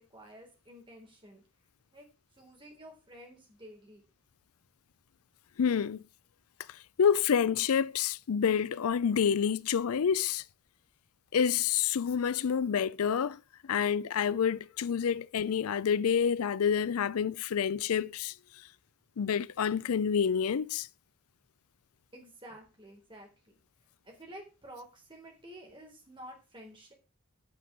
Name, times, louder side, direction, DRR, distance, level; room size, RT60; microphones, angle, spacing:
voice 1, 0.0-1.4 1.9-2.1 2.3-4.0 22.1-23.6 24.0-26.9, right 1 dB, 25° right, 3.7 m, -51 dB
voice 2, 5.6-6.0 6.7-10.4 11.3-18.3 19.2-20.9, left 7 dB, 90° left, 0.4 m, -28 dB
10.5 x 6.0 x 5.9 m
head